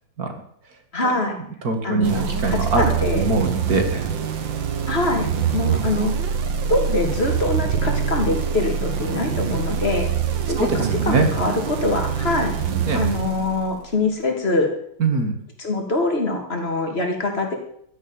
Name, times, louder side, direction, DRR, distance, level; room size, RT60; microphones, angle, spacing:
voice 1, 0.9-1.4 1.8-3.2 4.9-6.1 6.7-10.1 10.5-10.7 11.0-12.5 12.9-14.7 15.6-17.6, left 2 dB, 30° left, 2 dB, 2.9 m, -24 dB
voice 2, 1.6-4.1 10.6-11.3 12.9-13.0 15.0-15.4, right 3 dB, 45° right, 5 dB, 2.3 m, -22 dB
sound 1, 2.0-14.0, right 7 dB, 65° right, 2.0 m, -25 dB
13.0 x 9.4 x 9.0 m, 0.67 s
omnidirectional pair, 2.3 m